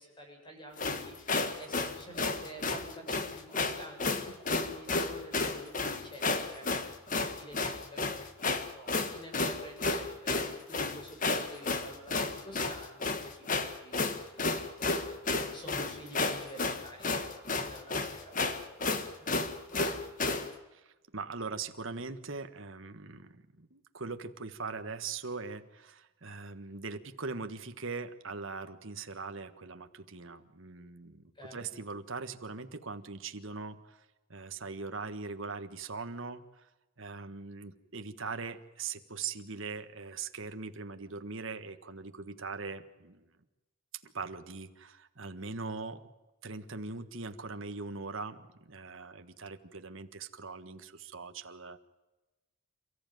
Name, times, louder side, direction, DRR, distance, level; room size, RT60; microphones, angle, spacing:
voice 1, 0.0-8.4 8.7-10.4 10.7-19.3 31.3-31.7, equal, 20° left, 2 dB, 7.6 m, -49 dB
sound 1, 0.8-20.5, left 3 dB, 35° left, 1.7 m, -32 dB
voice 2, 20.7-34.0 34.3-36.7 37.0-43.3 44.0-46.0 46.4-51.8, right 4 dB, 60° right, 8 dB, 1.5 m, -41 dB
29.0 x 14.5 x 9.3 m, 1.1 s
head